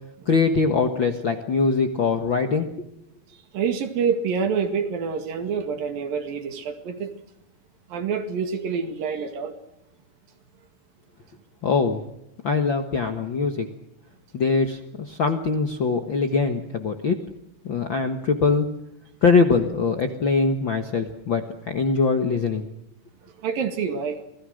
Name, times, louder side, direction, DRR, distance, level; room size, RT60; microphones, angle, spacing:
voice 1, 0.3-2.7 11.6-12.0 12.4-13.7 14.3-17.2 17.6-18.7 19.2-22.6, left 4 dB, 55° left, 1.4 m, -22 dB
voice 2, 3.3-7.1 7.9-9.6 23.4-24.2, right 6 dB, 70° right, 3.8 m, -27 dB
27.0 x 20.0 x 6.5 m
omnidirectional pair, 4.2 m